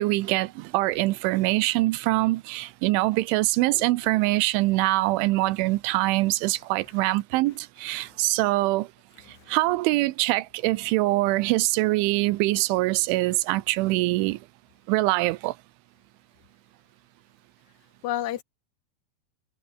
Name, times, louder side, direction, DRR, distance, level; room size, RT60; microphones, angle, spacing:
voice 1, 0.0-8.9 9.5-14.4 14.9-15.6, right 19 dB, 85° right, 3.2 m, -24 dB
voice 2, 18.0-18.4, left 13 dB, 70° left, 1.8 m, -33 dB
omnidirectional pair, 5.5 m